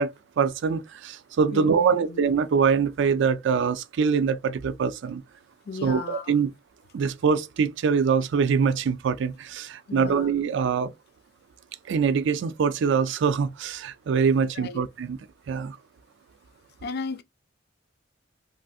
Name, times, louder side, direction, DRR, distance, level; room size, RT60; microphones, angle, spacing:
voice 1, 0.0-5.2 5.8-6.5 6.9-10.9 11.9-15.2 15.5-15.8, right 6 dB, 65° right, 0.4 m, -24 dB
voice 2, 1.5-2.2 5.7-6.4 9.9-10.3 14.5-14.8 16.8-17.2, left 4 dB, 55° left, 0.4 m, -36 dB
3.2 x 2.5 x 2.3 m
head